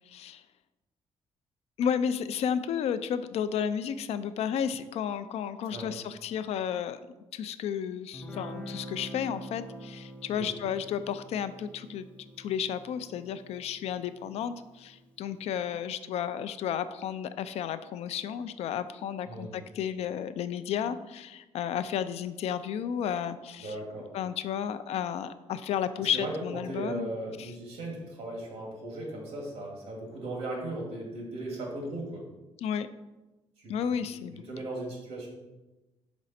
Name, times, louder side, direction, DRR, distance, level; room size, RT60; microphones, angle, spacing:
voice 1, 0.1-0.4 1.8-7.0 7.3-12.1 12.4-23.8 24.1-27.1 27.4-27.5 32.6-32.9 33.7-34.4, left 8 dB, 65° left, 12 dB, 0.4 m, -32 dB
Guitar, 8.1-15.3, right 1 dB, 10° left, 0.6 m, -45 dB
voice 2, 23.6-24.1 26.0-32.2 33.6-33.8 34.1-34.2 34.5-35.3, right 1 dB, 60° right, -1 dB, 2.0 m, -37 dB
5.8 x 5.1 x 4.2 m, 1.1 s
cardioid pair, 170°, 12 cm